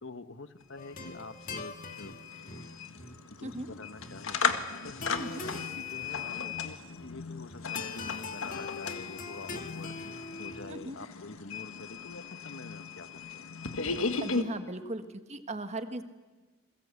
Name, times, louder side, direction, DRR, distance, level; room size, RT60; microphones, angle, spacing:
voice 1, 0.0-2.2 3.3-4.4 4.8-13.1 13.4-13.5, left 3 dB, 60° left, 11 dB, 1.2 m, -46 dB
sound 1, 0.6-0.7 1.0-14.4, left 5 dB, 80° left, 1.8 m, -36 dB
sound 2, 0.8-10.8, left 3 dB, 40° left, 2.1 m, -43 dB
voice 2, 14.2-15.0 15.3-16.0, right 2 dB, 30° right, 8 dB, 1.6 m, -37 dB
29.0 x 22.0 x 8.4 m, 1.2 s
head